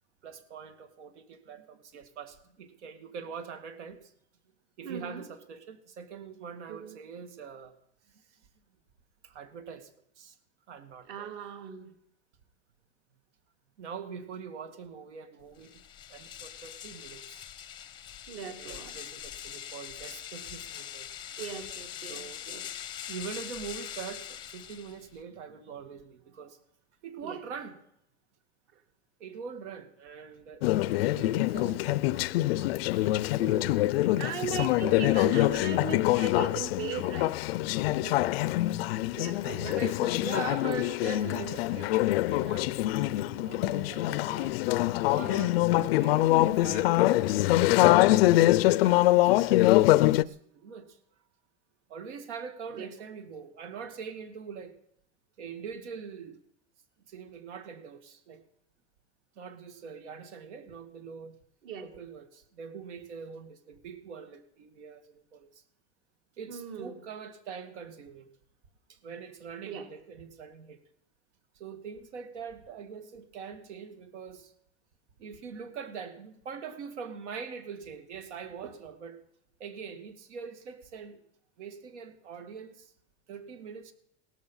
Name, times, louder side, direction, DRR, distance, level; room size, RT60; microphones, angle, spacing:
voice 1, 0.2-4.1 4.8-7.7 8.1-8.4 9.2-9.9 10.2-10.4 10.7-11.3 13.8-15.8 16.1-17.4 18.5-21.3 22.0-22.5 23.1-26.6 27.0-27.8 29.2-32.1 32.9-34.4 35.4-35.6 39.4-44.6 45.1-48.2 48.8-51.0 51.9-54.8 55.4-56.4 57.1-58.4 59.4-61.3 61.8-65.6 66.4-68.3 68.9-70.8 71.5-74.5 75.2-79.2 79.6-81.2 81.6-82.9 83.3-83.9, right 6 dB, 80° right, 9 dB, 2.4 m, -43 dB
voice 2, 4.8-5.2 6.7-7.0 11.1-11.9 18.3-18.9 21.4-22.6 27.2-27.4 34.2-37.3 38.0-38.3 39.1-39.6 52.7-52.9 61.6-61.9 66.5-67.0 69.6-69.9, right 7 dB, 50° right, 6 dB, 2.4 m, -38 dB
sound 1, 15.5-25.2, left 10 dB, 15° left, 0.7 m, -42 dB
Conversation / Chatter, 30.6-50.2, left 17 dB, 60° left, 0.5 m, -24 dB
17.5 x 13.5 x 5.6 m, 0.73 s
supercardioid pair, 170°, 35 cm